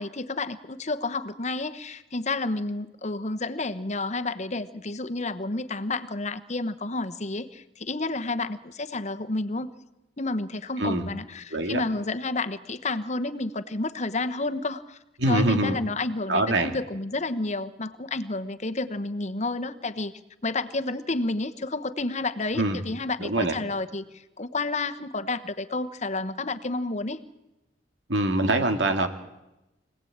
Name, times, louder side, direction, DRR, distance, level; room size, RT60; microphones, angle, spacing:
voice 1, 0.0-9.7 10.2-15.0 15.3-20.1 20.4-24.0 24.4-27.2, left 2 dB, 40° left, 12 dB, 1.1 m, -30 dB
voice 2, 10.8-11.1 11.5-11.8 15.2-15.8 16.3-16.7 22.6-22.8 23.2-23.6 28.1-29.1, right 1 dB, 85° right, 6 dB, 2.2 m, -24 dB
25.0 x 18.0 x 8.8 m, 0.97 s
head